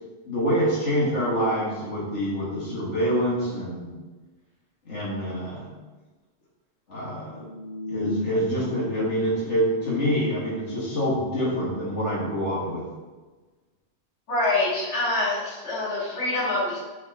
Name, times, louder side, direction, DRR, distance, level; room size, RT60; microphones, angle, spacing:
voice 1, 0.3-3.9 4.9-5.8 6.9-7.5 7.9-12.8, equal, 90° left, -7 dB, 2.0 m, -26 dB
sound 1, 7.3-9.0 9.3-10.9 11.3-11.7, left 3 dB, 45° right, 0.6 m, -35 dB
voice 2, 14.3-16.8, left 2 dB, 75° left, -7 dB, 2.2 m, -25 dB
6.9 x 4.8 x 4.1 m, 1.3 s
omnidirectional pair, 1.2 m